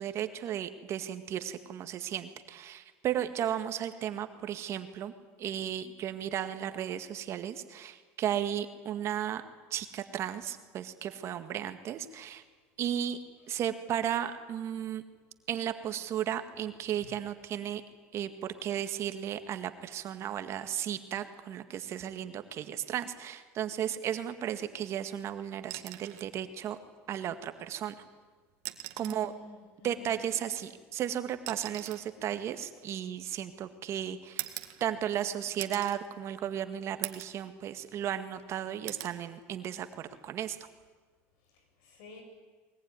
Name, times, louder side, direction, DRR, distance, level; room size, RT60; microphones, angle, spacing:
voice 1, 0.0-5.1 5.4-9.4 9.7-12.4 12.8-13.2 13.5-15.0 15.5-17.8 18.1-26.8 27.1-27.9 29.0-29.3 29.8-40.6, right 10 dB, 50° right, 9 dB, 1.8 m, -35 dB
sound 1, 25.6-26.3 27.8-27.9 28.5-29.3 30.5-33.6 34.4-35.2 35.6-36.0 36.5-36.6 37.0-37.4 37.8-38.5 38.9-39.2 40.7-40.9, right 18 dB, 70° right, 1.8 m, -42 dB
voice 2, 28.9-30.2 41.8-42.2, left 2 dB, 75° left, 4 dB, 7.6 m, -50 dB
22.0 x 20.5 x 9.7 m, 1.4 s
supercardioid pair, 110°, 6 cm